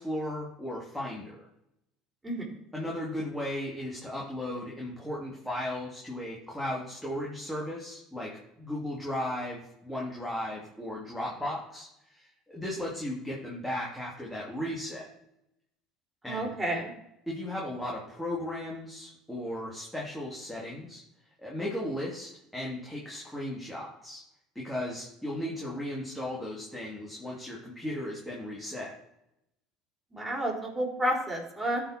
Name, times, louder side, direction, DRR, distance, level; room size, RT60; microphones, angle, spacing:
voice 1, 0.0-1.5 2.7-15.1 16.2-16.5 17.3-21.0 21.4-24.2 24.5-29.0, left 1 dB, 5° left, -4 dB, 2.8 m, -36 dB
voice 2, 16.2-16.9 30.1-31.8, right 1 dB, 10° right, -2 dB, 4.0 m, -30 dB
13.5 x 4.9 x 4.5 m, 0.82 s
supercardioid pair, 85°, 0 cm